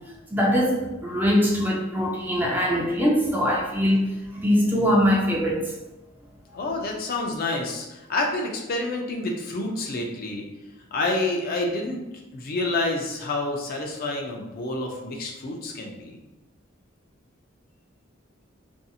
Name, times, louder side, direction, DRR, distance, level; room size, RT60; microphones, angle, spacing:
voice 1, 0.3-5.7, equal, 10° right, -3 dB, 0.4 m, -22 dB
voice 2, 6.5-10.4 10.9-12.0 12.3-16.2, left 2 dB, 50° left, 1 dB, 0.5 m, -28 dB
2.6 x 2.4 x 2.7 m, 1.0 s
head